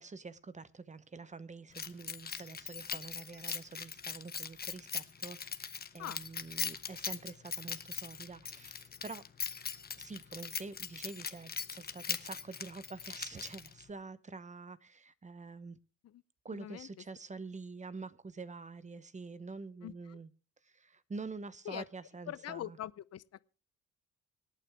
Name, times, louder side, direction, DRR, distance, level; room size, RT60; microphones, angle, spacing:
voice 1, 0.0-9.2 10.0-15.8 16.4-20.3 20.6-22.8, right 4 dB, 25° right, 0.9 m, -47 dB
Keys jangling, 1.7-13.9, left 6 dB, 30° left, 1.1 m, -41 dB
voice 2, 16.5-16.9 19.8-20.2 21.6-21.8 22.3-23.2, left 12 dB, 55° left, 0.7 m, -43 dB
25.5 x 9.0 x 3.5 m
cardioid pair, 90°, 30 cm